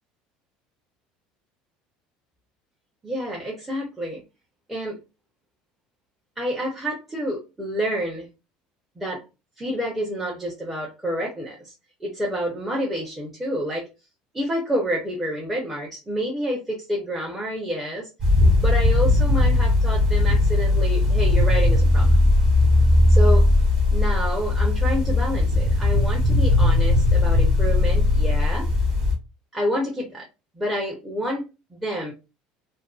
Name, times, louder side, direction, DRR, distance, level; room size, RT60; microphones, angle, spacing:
voice 1, 3.0-4.2 4.7-5.0 6.4-8.3 9.0-9.2 9.6-11.7 12.0-13.9 14.3-18.1 18.6-22.1 23.1-23.5 23.9-28.7 29.5-30.3 30.6-31.4 31.7-32.1, equal, 10° right, -3 dB, 0.5 m, -28 dB
sound 1, 18.2-29.1, left 2 dB, 30° right, 1.1 m, -18 dB
2.5 x 2.3 x 2.2 m, 0.27 s
cardioid pair, 170°, 3 cm